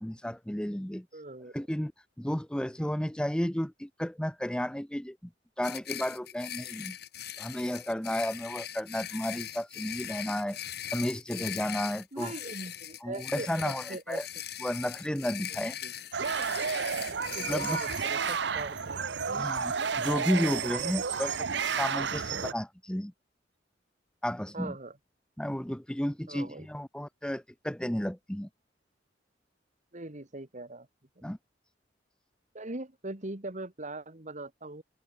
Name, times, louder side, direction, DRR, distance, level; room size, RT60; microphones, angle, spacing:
voice 1, 0.0-1.2 1.5-1.9 2.2-5.2 5.6-7.0 7.4-10.6 10.9-12.3 13.0-14.3 14.6-15.8 17.4-17.8 19.4-23.1 24.2-24.7 25.4-28.5 31.2-31.4, equal, 5° left, 0.8 m, -33 dB
voice 2, 1.1-1.5 12.1-14.2 15.8-15.9 17.3-19.5 20.3-20.5 20.8-21.0 21.3-21.4 22.4-22.6 24.5-25.0 26.3-26.7 29.9-30.9 31.2-31.3 32.5-34.8, right 2 dB, 45° right, 2.2 m, -41 dB
sound 1, 5.6-18.4, left 11 dB, 65° left, 5.5 m, -40 dB
sound 2, 16.1-22.5, right 6 dB, 70° right, 0.9 m, -31 dB
head